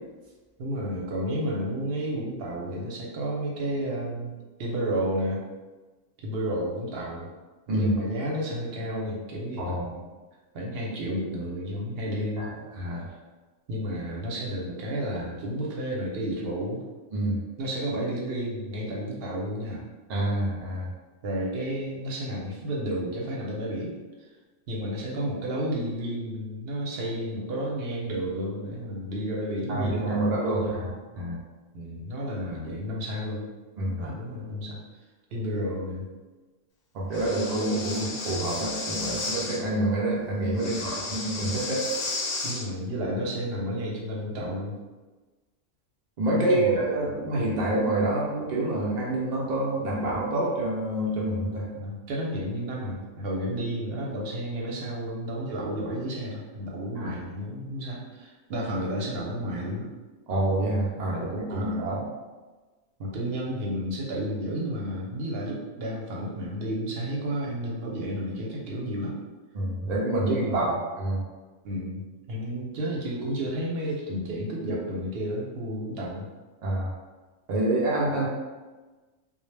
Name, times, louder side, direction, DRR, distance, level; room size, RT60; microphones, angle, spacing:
voice 1, 0.6-4.3 4.6-5.4 6.2-7.3 7.7-10.0 10.5-12.7 13.0-13.2 13.7-16.8 17.6-19.9 21.2-23.9 24.7-30.2 30.5-30.9 31.7-33.5 34.0-34.8 35.3-36.1 40.6-40.9 42.4-44.8 46.4-46.8 51.7-59.9 61.2-62.0 63.0-69.2 70.2-70.8 71.6-76.3, equal, 60° right, -3 dB, 0.7 m, -32 dB
voice 2, 20.1-20.9 29.7-30.9 31.2-31.4 33.8-34.0 36.9-41.8 46.2-51.7 57.0-57.2 60.3-62.0 69.5-71.2 76.6-76.9 77.5-78.3, right 1 dB, 75° right, -4 dB, 0.4 m, -27 dB
Breathing, 37.1-39.6 40.5-42.7, left 3 dB, 60° left, 0.6 m, -33 dB
2.1 x 2.0 x 3.1 m, 1.3 s
omnidirectional pair, 1.3 m